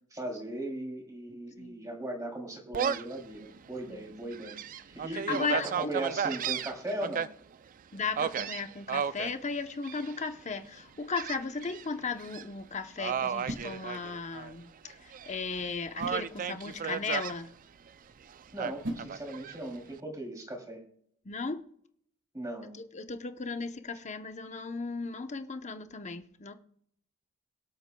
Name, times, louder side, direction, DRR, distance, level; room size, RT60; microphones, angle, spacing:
voice 1, 0.1-4.6 4.9-7.3 18.5-20.8 22.3-22.7, right 1 dB, 15° right, 2.9 m, -38 dB
Gull seagull, 2.7-3.2 3.7-3.8 4.3-7.3 8.2-9.3 9.8-10.3 11.1-11.8 12.2-12.4 13.0-14.5 14.9-15.6 16.0-17.3 18.6-19.6, right 7 dB, 40° right, 0.3 m, -34 dB
voice 2, 5.1-5.9 7.9-17.5 21.2-21.6 22.8-26.5, left 4 dB, 35° left, 0.8 m, -36 dB
sound 1, 10.6-19.9, equal, 60° right, 1.9 m, -47 dB
23.0 x 8.0 x 2.3 m
head